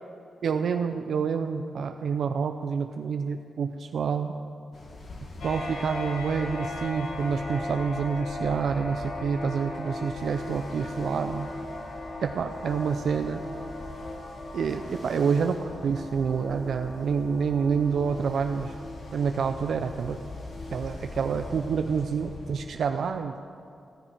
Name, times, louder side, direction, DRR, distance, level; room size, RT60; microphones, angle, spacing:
voice 1, 0.4-4.4 5.4-11.5 12.2-13.4 14.5-18.8 19.1-20.2 20.7-23.3, right 6 dB, 70° right, 7 dB, 0.5 m, -28 dB
Ocean, 4.7-22.6, left 2 dB, 50° left, 1.7 m, -43 dB
sound 1, 5.4-22.6, left 1 dB, 65° left, 2.1 m, -39 dB
15.0 x 14.5 x 4.5 m, 2.5 s
wide cardioid pair, 150°, 0 cm